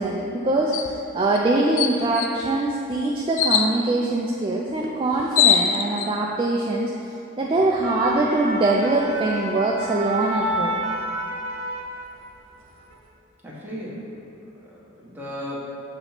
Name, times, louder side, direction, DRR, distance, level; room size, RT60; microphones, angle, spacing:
voice 1, 0.0-6.9 7.4-10.8, right 2 dB, 25° right, -3 dB, 0.3 m, -23 dB
sound 1, 0.7-0.9 1.3-1.4 1.8-2.3 3.4-3.7 4.8-4.9 5.1-6.1, left 8 dB, 70° left, 0.4 m, -20 dB
sound 2, 7.6-12.3 12.7-12.9, right 1 dB, 85° right, 0.7 m, -30 dB
voice 2, 13.4-15.7, equal, 10° right, -7 dB, 1.1 m, -36 dB
6.6 x 3.0 x 5.7 m, 2.9 s
head